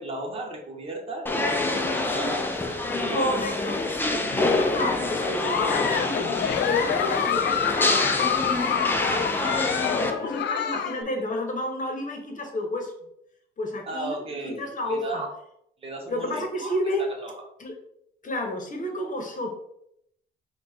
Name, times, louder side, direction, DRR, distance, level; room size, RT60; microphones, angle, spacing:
voice 1, 0.0-3.4 13.9-15.3 15.8-17.3, right 2 dB, 30° right, 0 dB, 1.2 m, -36 dB
sound 1, 1.3-10.1, left 2 dB, 10° left, 0.6 m, -26 dB
voice 2, 3.1-6.4 6.6-8.3 8.5-9.6 10.0-12.9 13.6-14.2 14.6-15.2 16.1-17.1 17.6-17.7 18.2-19.6, left 1 dB, 40° left, 2 dB, 1.2 m, -31 dB
Giggle, 4.3-11.0, left 8 dB, 60° left, 0.4 m, -27 dB
4.5 x 2.4 x 4.4 m, 0.73 s
cardioid pair, 90°, 20 cm